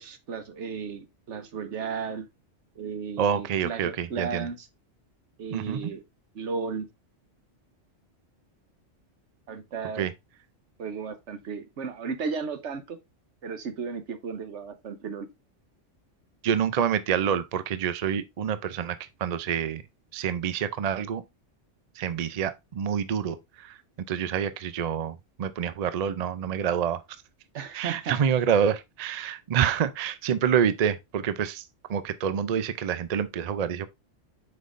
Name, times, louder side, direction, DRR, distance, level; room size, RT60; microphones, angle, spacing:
voice 1, 0.0-2.3 2.8-4.7 5.4-6.0 6.3-6.9 9.5-10.1 10.8-13.0 13.4-15.3 27.5-28.2, right 5 dB, 70° right, 1.2 m, -34 dB
voice 2, 3.2-4.5 5.5-5.9 10.0-10.1 16.4-19.8 20.1-21.2 22.0-23.7 24.1-27.0 27.7-31.6 31.9-33.9, right 8 dB, 55° right, 0.4 m, -27 dB
7.8 x 5.3 x 2.5 m
omnidirectional pair, 1.3 m